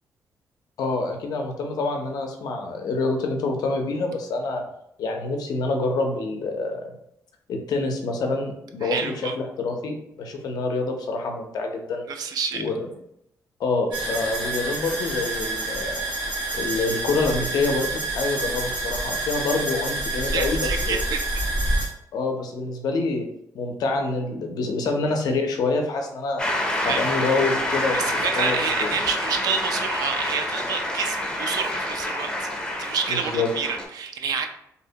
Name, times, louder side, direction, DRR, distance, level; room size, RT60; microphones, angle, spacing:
voice 1, 0.8-4.6 5.0-6.9 7.5-12.0 12.5-12.9 13.6-16.0 16.5-21.0 22.1-23.3 23.5-26.4 26.8-28.9 33.1-33.5, left 3 dB, 70° left, 3 dB, 0.5 m, -26 dB
voice 2, 8.8-9.3 12.1-12.6 20.2-21.3 26.8-27.0 27.9-32.5 32.8-34.5, right 6 dB, 65° right, 6 dB, 0.3 m, -28 dB
sound 1, 13.9-21.9, right 2 dB, 85° right, 0.8 m, -28 dB
Shout / Cheering / Applause, 26.4-33.8, left 1 dB, 15° left, 0.5 m, -27 dB
2.7 x 2.1 x 2.7 m, 0.78 s
cardioid pair, 105°, 7 cm